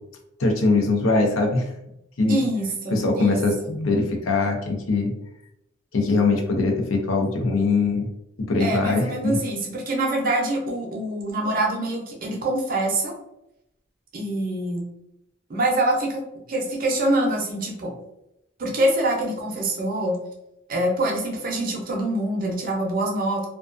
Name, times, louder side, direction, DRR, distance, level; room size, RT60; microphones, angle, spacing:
voice 1, 0.4-1.7 2.2-2.4 2.9-5.1 5.9-8.1 8.5-9.4, left 3 dB, 85° left, 3 dB, 0.5 m, -22 dB
voice 2, 2.3-3.7 8.6-13.1 14.1-14.9 15.5-17.9 18.6-20.2 20.7-23.5, right 1 dB, 45° right, 0 dB, 0.6 m, -25 dB
2.4 x 2.2 x 2.4 m, 0.84 s
head